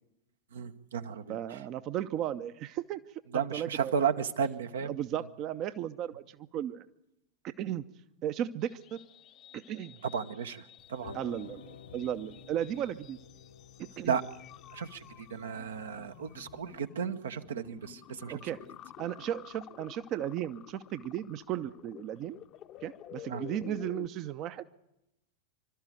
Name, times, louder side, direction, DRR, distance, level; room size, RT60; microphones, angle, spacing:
voice 1, 0.5-1.6 3.3-4.9 10.0-11.2 14.0-14.2 14.7-18.4 23.3-23.4, right 7 dB, 65° right, 9 dB, 0.9 m, -34 dB
voice 2, 1.3-4.0 4.9-6.8 7.4-7.8 8.2-9.0 9.5-10.0 11.1-13.2 13.8-14.2 18.3-18.6 19.0-22.4 22.8-24.6, right 11 dB, 35° right, 13 dB, 0.7 m, -35 dB
sound 1, 8.6-24.1, left 11 dB, 35° left, 0.8 m, -51 dB
sound 2, 10.8-16.8, left 5 dB, 70° left, 1.5 m, -52 dB
26.5 x 13.0 x 9.3 m, 0.86 s
figure-of-eight pair, 90°, 0 cm